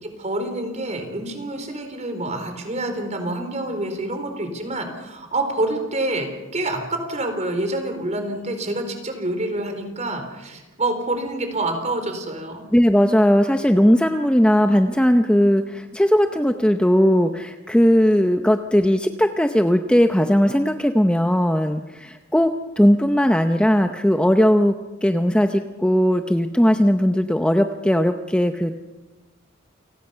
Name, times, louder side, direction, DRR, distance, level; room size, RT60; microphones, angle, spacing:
voice 1, 0.0-6.3 6.5-12.6, right 2 dB, 35° right, 6 dB, 4.0 m, -27 dB
voice 2, 12.7-28.7, equal, 5° left, 6 dB, 0.7 m, -18 dB
29.0 x 19.0 x 5.7 m, 1.1 s
head